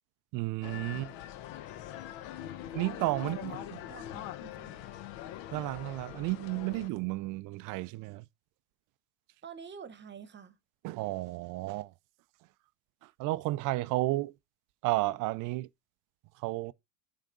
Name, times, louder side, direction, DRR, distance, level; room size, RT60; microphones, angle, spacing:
voice 1, 0.3-1.1 2.7-3.8 5.5-8.3 10.8-11.9 13.0-14.3 14.8-15.7 16.4-16.7, right 19 dB, 45° right, 0.5 m, -32 dB
sound 1, 0.6-6.9, left 12 dB, 60° left, 0.8 m, -43 dB
voice 2, 3.3-5.0 9.4-10.6, right 6 dB, 25° right, 1.1 m, -49 dB
9.2 x 3.6 x 3.8 m
supercardioid pair, 100°, 47 cm